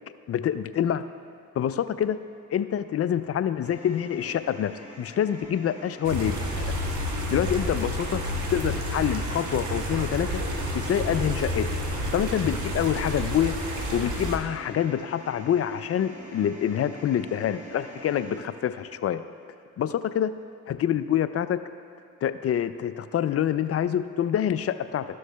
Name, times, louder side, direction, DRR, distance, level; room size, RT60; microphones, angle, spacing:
voice 1, 0.3-1.0 1.6-2.2 2.5-4.7 5.0-6.7 7.3-8.2 8.5-10.4 10.7-11.7 12.1-13.5 13.9-19.2 19.8-20.3 20.7-21.6 22.2-25.0, left 10 dB, 45° left, 13 dB, 0.4 m, -26 dB
sound 1, 3.6-18.4, right 2 dB, 20° right, 1.9 m, -45 dB
sound 2, 6.0-14.4, equal, 65° right, 1.3 m, -30 dB
13.5 x 6.4 x 2.2 m, 2.4 s
supercardioid pair, 55°, 33 cm